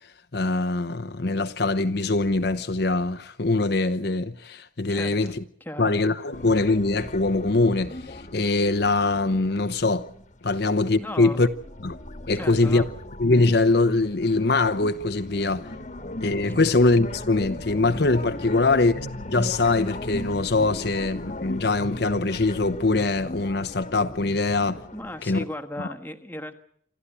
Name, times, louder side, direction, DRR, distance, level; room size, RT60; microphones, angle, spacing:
voice 1, 0.3-5.4 5.8-10.1 10.4-11.5 11.8-12.0 12.3-12.8 13.2-15.7 16.2-24.8 25.2-25.4 25.8-25.9, left 3 dB, 60° left, 0.9 m, -23 dB
voice 2, 4.9-5.3 5.6-5.9 10.5-10.6 11.0-11.5 12.3-12.9 16.5-16.6 18.6-18.8 24.9-26.5, left 1 dB, 10° left, 1.4 m, -36 dB
sound 1, 6.3-10.5 10.9-25.3, left 1 dB, 40° left, 1.5 m, -37 dB
27.5 x 12.5 x 10.0 m
head